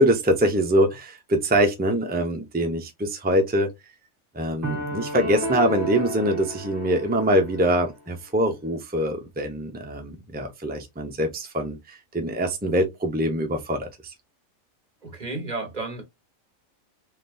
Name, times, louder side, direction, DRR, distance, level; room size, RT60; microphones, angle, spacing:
voice 1, 0.0-3.7 4.3-14.1, right 1 dB, 15° right, 0.3 m, -24 dB
sound 1, 4.6-7.9, right 1 dB, 55° right, 1.6 m, -31 dB
voice 2, 15.0-16.0, right 3 dB, 30° right, 1.7 m, -32 dB
3.8 x 3.2 x 2.6 m
omnidirectional pair, 1.4 m